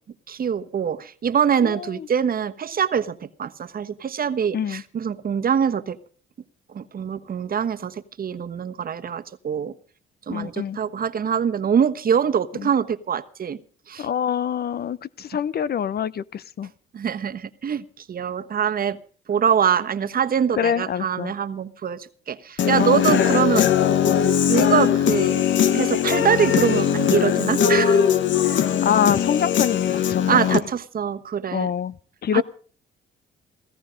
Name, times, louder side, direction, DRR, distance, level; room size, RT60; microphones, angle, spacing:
voice 1, 0.3-6.0 6.7-9.7 10.3-13.6 13.9-14.1 16.9-19.0 19.3-23.7 24.5-25.4 25.7-28.0 28.4-28.6 30.3-31.7 32.3-32.4, right 7 dB, 45° right, 1.2 m, -24 dB
voice 2, 1.6-2.1 4.5-4.8 10.3-10.8 12.6-12.7 14.0-16.7 20.6-21.3 22.8-23.3 23.5-24.3 28.5-30.6 31.5-32.4, left 8 dB, 50° left, 0.8 m, -26 dB
Human voice / Guitar, 22.6-30.6, left 8 dB, 70° left, 1.5 m, -20 dB
17.0 x 15.0 x 5.2 m
cardioid pair, 90°, 20 cm